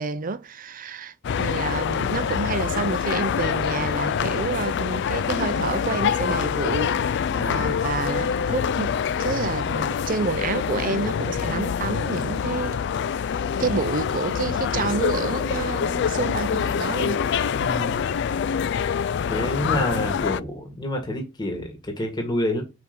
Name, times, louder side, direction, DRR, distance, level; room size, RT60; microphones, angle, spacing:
voice 1, 0.0-12.8 13.6-17.2, right 4 dB, 40° right, 0.5 m, -29 dB
sound 1, 1.2-20.4, left 7 dB, 55° left, 0.3 m, -25 dB
voice 2, 7.3-7.7 17.5-18.0 19.3-22.6, left 1 dB, 20° left, 1.9 m, -28 dB
5.4 x 5.2 x 6.1 m
head